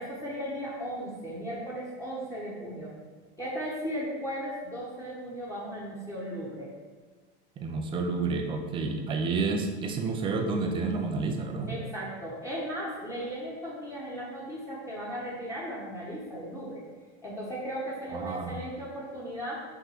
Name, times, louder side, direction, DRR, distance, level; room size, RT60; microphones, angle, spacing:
voice 1, 0.0-2.9 3.4-6.7 11.7-16.8 17.2-19.6, equal, 10° left, -8 dB, 1.0 m, -36 dB
voice 2, 7.6-11.8 18.1-18.5, right 4 dB, 15° right, 4 dB, 0.3 m, -30 dB
5.7 x 3.6 x 5.7 m, 1.4 s
supercardioid pair, 155°, 34 cm